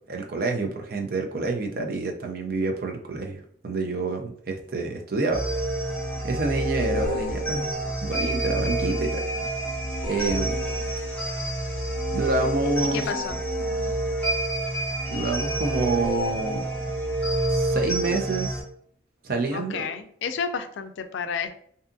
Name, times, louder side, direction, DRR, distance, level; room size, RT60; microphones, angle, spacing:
voice 1, 0.1-5.5 6.2-7.7 8.0-9.2 10.1-10.6 12.1-13.1 15.1-16.6 17.5-18.6 19.2-19.8, right 3 dB, 50° right, 3 dB, 0.5 m, -28 dB
sound 1, 5.3-18.6, right 1 dB, 10° left, 0.7 m, -28 dB
voice 2, 12.9-13.4 19.5-21.5, left 6 dB, 80° left, 9 dB, 0.3 m, -31 dB
2.6 x 2.3 x 2.5 m, 0.63 s
head